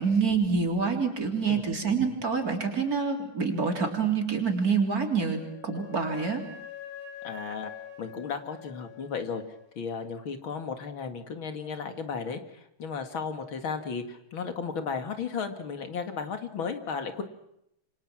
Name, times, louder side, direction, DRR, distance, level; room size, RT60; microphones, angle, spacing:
voice 1, 0.0-6.4, right 5 dB, 45° right, 4 dB, 4.0 m, -27 dB
Wind instrument woodwind instrument, 5.0-9.7, left 8 dB, 25° left, 6.7 m, -45 dB
voice 2, 7.2-7.7 8.0-9.4 9.8-17.2, left 5 dB, 80° left, 7 dB, 2.9 m, -34 dB
27.5 x 26.0 x 6.1 m, 0.79 s
omnidirectional pair, 2.2 m